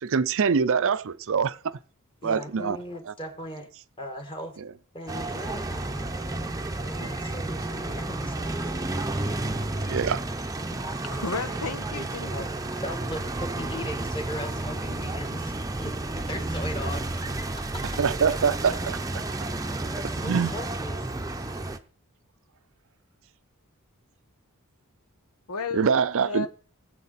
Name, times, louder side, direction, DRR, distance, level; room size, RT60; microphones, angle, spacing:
voice 1, 0.0-1.6 2.2-2.8 7.0-7.1 9.9-10.2 10.7-10.8 18.0-19.0 20.2-20.5 25.7-26.5, right 6 dB, 60° right, 0.5 m, -24 dB
voice 2, 2.2-3.7 4.0-4.6 4.9-8.7 12.3-12.5 12.8-15.5 15.8-17.1 17.6-17.8 20.0-21.1, equal, 25° left, 2.0 m, -38 dB
sound 1, 5.1-21.8, right 2 dB, 15° right, 0.7 m, -31 dB
voice 3, 11.0-12.5 25.5-25.9 26.2-26.5, left 4 dB, 85° left, 1.0 m, -33 dB
19.5 x 7.7 x 4.2 m
head